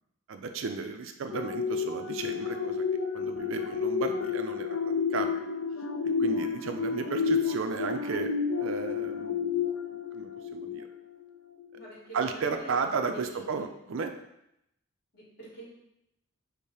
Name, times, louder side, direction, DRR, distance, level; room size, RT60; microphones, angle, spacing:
voice 1, 0.3-2.8 3.1-5.3 6.2-8.3 8.6-9.7 10.1-10.9 12.1-14.1, right 4 dB, 65° right, 6 dB, 0.4 m, -34 dB
sound 1, 1.3-11.2 11.6-11.8, left 6 dB, 70° left, 0.4 m, -31 dB
voice 2, 11.8-12.8 13.1-13.6 15.1-15.6, right 1 dB, 50° left, -5 dB, 1.8 m, -47 dB
5.3 x 2.1 x 4.8 m, 0.81 s
head